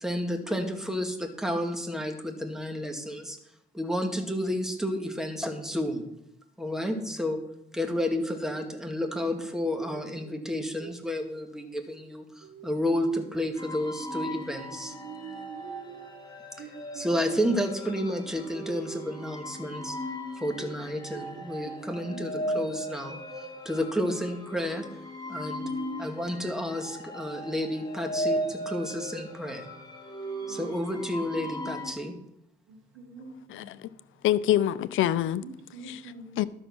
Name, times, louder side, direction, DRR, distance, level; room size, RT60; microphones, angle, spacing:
voice 1, 0.0-3.4 3.7-6.1 6.6-7.4 7.7-14.9 16.6-16.7 16.9-20.0 20.4-24.8 25.3-25.6 26.0-29.7 30.5-32.1, equal, ahead, 2.0 m, -31 dB
voice 2, 9.8-10.4 10.8-10.9 12.4-12.7 14.8-16.1 16.6-17.3 20.6-20.7 21.1-22.7 25.6-26.1 30.4-30.6 33.0-33.8 35.4-36.4, right 5 dB, 90° right, 1.8 m, -45 dB
sound 1, 13.6-31.9, equal, 20° left, 3.0 m, -37 dB
voice 3, 33.5-33.9 34.2-35.4 35.8-36.4, left 12 dB, 80° left, 0.6 m, -26 dB
12.5 x 6.3 x 6.2 m
cardioid pair, 90°, 20 cm